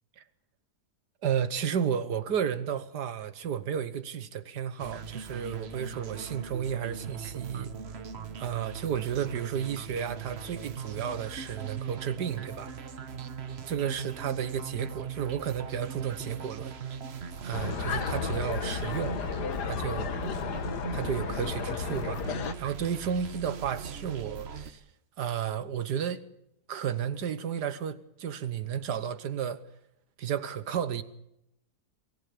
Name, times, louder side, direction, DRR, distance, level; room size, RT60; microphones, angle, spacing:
voice 1, 1.2-7.7 8.4-12.7 13.7-16.7 17.4-19.2 19.6-20.1 20.9-22.2 22.6-24.8 25.2-26.2 26.7-29.6 30.2-31.0, right 8 dB, 90° right, 1.8 m, -32 dB
sound 1, 4.8-24.7, right 6 dB, 45° right, 1.2 m, -40 dB
sound 2, 17.5-22.5, left 6 dB, 80° left, 1.8 m, -33 dB
23.5 x 14.5 x 8.6 m
omnidirectional pair, 1.7 m